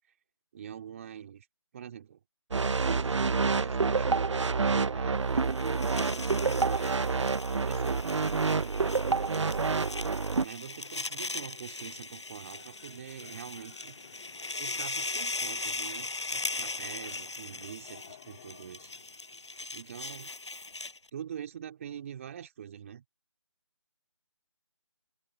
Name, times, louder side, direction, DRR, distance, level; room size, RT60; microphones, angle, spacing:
voice 1, 0.5-1.5 1.7-2.2 2.7-4.1 4.5-5.4 6.1-7.4 7.6-9.9 10.4-14.0 14.6-18.9 19.7-20.3 21.1-23.0, right 9 dB, 25° right, 2.6 m, -45 dB
sound 1, 2.5-10.5, right 4 dB, 70° right, 0.5 m, -28 dB
sound 2, 5.3-21.1, left 3 dB, 65° left, 5.6 m, -39 dB
sound 3, 9.9-20.4, left 9 dB, 25° left, 3.0 m, -58 dB
figure-of-eight pair, 155°, 16 cm